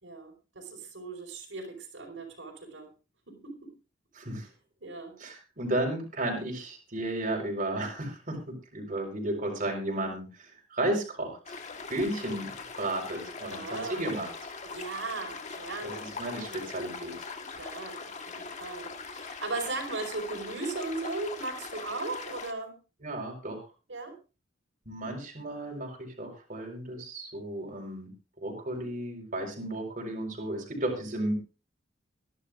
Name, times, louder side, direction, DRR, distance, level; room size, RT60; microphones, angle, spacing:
voice 1, 0.0-2.9 3.3-3.5 4.8-5.2 13.5-14.1 14.6-16.1 16.4-16.7 17.5-22.8 23.9-24.1, right 3 dB, 85° right, 1 dB, 4.8 m, -37 dB
voice 2, 4.1-4.5 5.2-11.6 11.9-12.5 12.8-14.3 15.8-17.2 23.0-23.7 24.9-28.1 28.4-31.3, right 1 dB, 45° right, 0 dB, 4.4 m, -33 dB
sound 1, 11.5-22.5, left 4 dB, 40° left, 1.5 m, -41 dB
23.5 x 11.5 x 2.5 m, 0.32 s
head